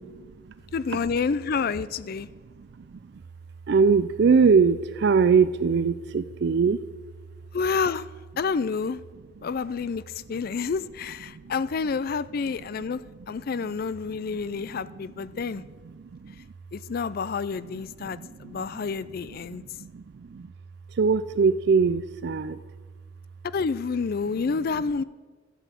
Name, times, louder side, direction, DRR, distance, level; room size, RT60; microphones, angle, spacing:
voice 1, 0.1-0.5 2.4-3.2 3.7-6.8 11.3-11.5 13.6-13.7 14.3-16.5 18.0-18.8 19.5-20.5 20.9-22.6, right 5 dB, 60° right, 13 dB, 0.4 m, -24 dB
voice 2, 0.7-2.3 7.5-8.1 8.4-9.0 9.4-15.6 16.7-19.6 23.5-25.0, left 5 dB, 50° left, 17 dB, 0.4 m, -29 dB
13.0 x 8.2 x 7.5 m, 1.4 s
head